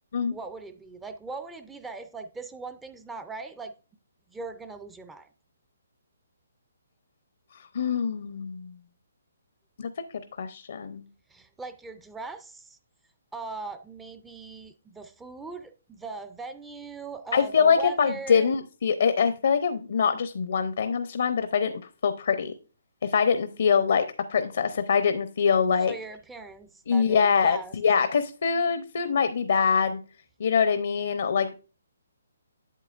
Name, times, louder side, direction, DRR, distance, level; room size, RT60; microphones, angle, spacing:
voice 1, 0.2-3.7 4.3-5.3 11.3-12.8 13.3-18.5 25.9-27.7, right 3 dB, 5° right, 0.4 m, -40 dB
voice 2, 7.7-8.7 9.8-9.9 10.4-11.0 17.3-21.7 22.0-22.5 23.0-25.9 26.9-30.0 30.4-31.5, left 6 dB, 65° left, 0.6 m, -24 dB
8.3 x 7.4 x 2.4 m
hypercardioid pair, 155°, 0 cm